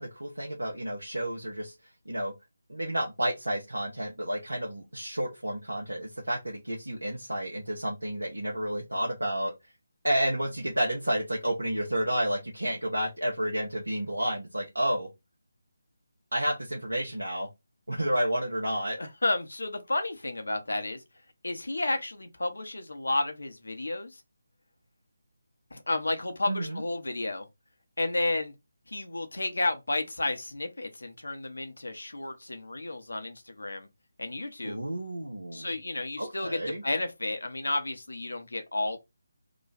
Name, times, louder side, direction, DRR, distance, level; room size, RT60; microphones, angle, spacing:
voice 1, 0.0-1.7 2.1-2.3 2.7-9.5 10.0-15.1 16.3-17.5 17.9-19.0 26.5-26.8 34.6-35.7 36.2-36.8, right 1 dB, 80° right, 0.9 m, -30 dB
voice 2, 19.0-21.0 21.4-24.2 25.7-27.5 28.0-28.5 28.9-33.9 34.2-34.8 35.5-39.0, left 2 dB, 70° left, 0.9 m, -32 dB
3.0 x 2.3 x 4.0 m
figure-of-eight pair, 155°, 0 cm